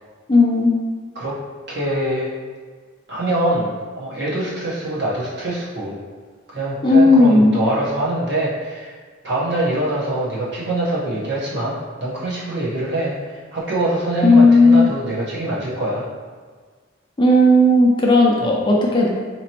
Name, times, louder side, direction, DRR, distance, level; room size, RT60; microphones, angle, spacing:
voice 1, 0.3-0.7 6.8-7.6 14.2-14.9 17.2-19.1, left 2 dB, 25° left, -2 dB, 0.5 m, -13 dB
voice 2, 1.7-2.3 3.1-6.0 6.5-8.9 9.2-16.0, right 1 dB, 60° right, -6 dB, 1.1 m, -24 dB
4.1 x 3.0 x 2.9 m, 1.5 s
head